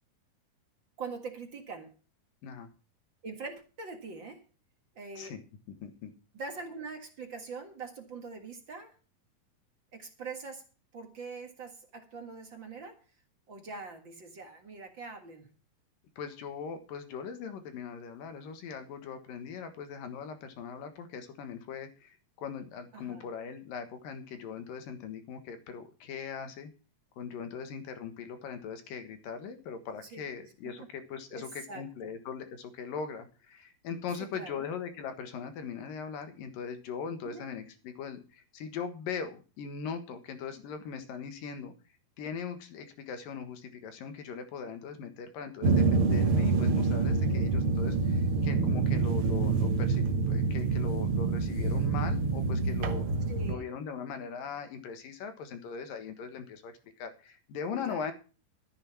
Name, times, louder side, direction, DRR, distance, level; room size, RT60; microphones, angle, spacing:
voice 1, 1.0-1.9 3.2-4.4 5.0-5.3 6.3-8.9 9.9-10.6 10.9-13.0 13.5-15.5 22.9-23.2 30.0-30.2 30.8-30.9 31.3-32.1 34.2-34.6 37.2-37.4 53.3-53.7 57.9-58.0, right 4 dB, 45° right, 4 dB, 1.7 m, -43 dB
voice 2, 5.8-6.1 16.2-26.7 27.2-41.7 42.2-53.1 53.5-58.1, left 6 dB, 70° left, 8 dB, 3.1 m, -40 dB
sound 1, 45.6-53.5, right 4 dB, 80° right, 1.2 m, -27 dB
13.5 x 7.8 x 5.9 m, 0.35 s
omnidirectional pair, 4.3 m